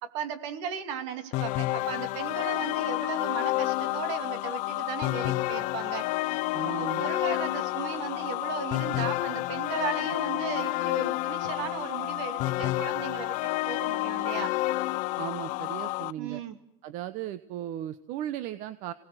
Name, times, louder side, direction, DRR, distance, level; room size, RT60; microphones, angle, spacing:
voice 1, 0.0-6.1 6.8-13.4 13.7-14.6 16.2-16.6, right 7 dB, 70° right, 8 dB, 2.8 m, -36 dB
sound 1, 1.3-16.1, left 18 dB, 55° left, 0.8 m, -29 dB
voice 2, 6.5-7.0 15.2-16.4 16.8-18.9, right 11 dB, 55° right, 13 dB, 1.0 m, -36 dB
27.5 x 18.5 x 7.9 m, 0.84 s
supercardioid pair, 135°, 16 cm